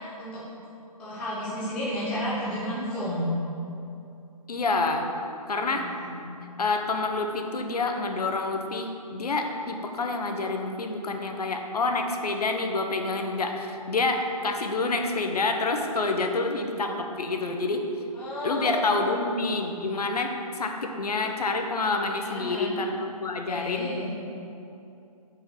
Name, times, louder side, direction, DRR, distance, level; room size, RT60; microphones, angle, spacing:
voice 1, 1.0-3.3 5.7-6.1 18.1-19.2 22.2-22.8 23.5-24.1, equal, 5° left, -10 dB, 0.7 m, -32 dB
voice 2, 4.5-5.1 5.5-5.9 6.6-17.8 18.4-23.9, left 3 dB, 80° left, 4 dB, 1.1 m, -28 dB
6.6 x 5.4 x 6.2 m, 2.7 s
hypercardioid pair, 175°, 20 cm